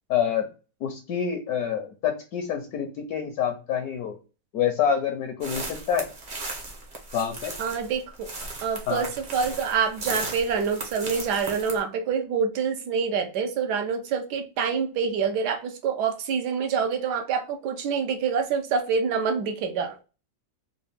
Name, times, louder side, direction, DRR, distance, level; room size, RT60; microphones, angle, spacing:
voice 1, 0.1-0.5 0.8-4.2 4.5-6.1 7.1-7.5 8.9-9.1, left 8 dB, 70° left, 1.0 m, -27 dB
sound 1, 5.4-11.8, right 3 dB, 40° right, 0.7 m, -37 dB
voice 2, 7.6-8.3 8.6-20.0, right 6 dB, 70° right, 1.2 m, -26 dB
3.9 x 2.3 x 3.2 m
omnidirectional pair, 1.9 m